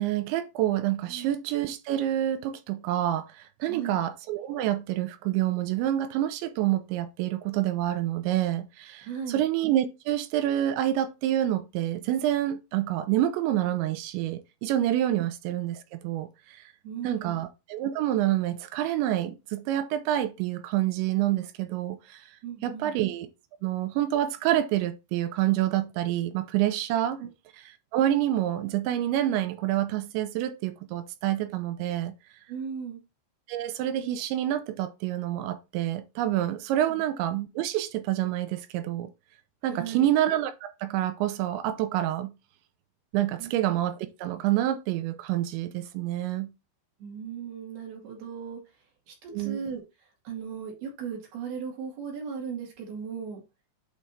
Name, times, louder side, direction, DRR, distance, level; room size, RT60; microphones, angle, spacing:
voice 1, 0.0-16.6 17.0-22.3 22.6-23.3 23.6-27.2 27.9-32.1 33.5-39.1 39.6-42.3 43.1-46.5 49.3-49.6, right 12 dB, 85° right, 2.9 m, -27 dB
voice 2, 3.7-4.0 9.0-9.4 16.8-17.4 22.4-23.0 27.2-27.3 32.5-33.0 36.9-37.0 39.7-40.1 43.4-43.5 47.0-53.4, right 7 dB, 60° right, 3.8 m, -37 dB
8.4 x 3.4 x 4.2 m
omnidirectional pair, 5.3 m